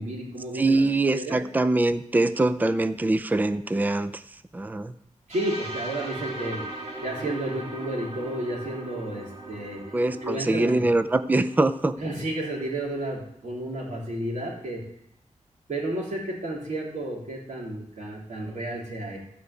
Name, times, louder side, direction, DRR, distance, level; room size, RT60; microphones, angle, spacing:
voice 1, 0.0-1.4 5.3-6.6 7.0-9.9 10.2-10.9 12.0-14.8 15.7-19.2, right 1 dB, 75° right, -3 dB, 3.7 m, -32 dB
voice 2, 0.5-4.2 4.5-4.9 9.9-12.0, right 2 dB, 15° right, 11 dB, 0.4 m, -23 dB
sound 1, 5.3-13.1, right 2 dB, 50° right, 1.9 m, -39 dB
13.0 x 5.1 x 8.2 m, 0.72 s
wide cardioid pair, 140°, 13 cm